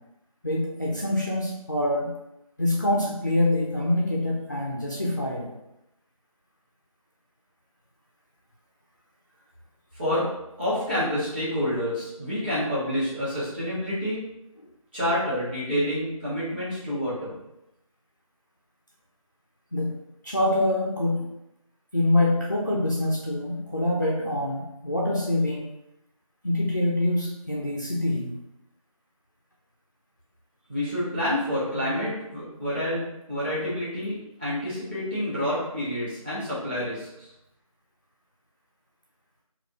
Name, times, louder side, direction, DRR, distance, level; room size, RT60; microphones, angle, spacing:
voice 1, 0.4-2.1 2.6-5.5 19.7-19.9 20.2-21.3 21.9-25.7 26.4-28.4, left 1 dB, 30° left, -4 dB, 0.5 m, -25 dB
voice 2, 9.9-10.3 10.6-14.2 14.9-17.3 30.7-37.3, left 1 dB, 15° right, -10 dB, 1.0 m, -28 dB
3.6 x 2.4 x 3.8 m, 0.85 s
figure-of-eight pair, 170°, 18 cm